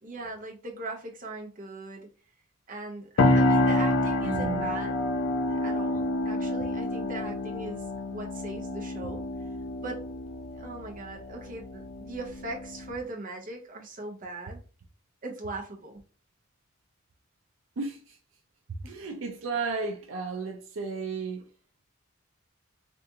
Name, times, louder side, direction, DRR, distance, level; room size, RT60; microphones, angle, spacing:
voice 1, 0.0-2.1 2.7-5.0 5.5-7.8 8.1-9.2 9.8-10.1 10.5-14.6 15.2-16.0 18.8-18.9, right 2 dB, 40° right, 0.7 m, -39 dB
sound 1, 3.2-12.9, left 2 dB, 70° left, 0.4 m, -28 dB
voice 2, 4.2-4.7 17.8-18.2 18.7-21.4, right 4 dB, 75° right, 0.5 m, -33 dB
3.5 x 2.5 x 2.8 m
head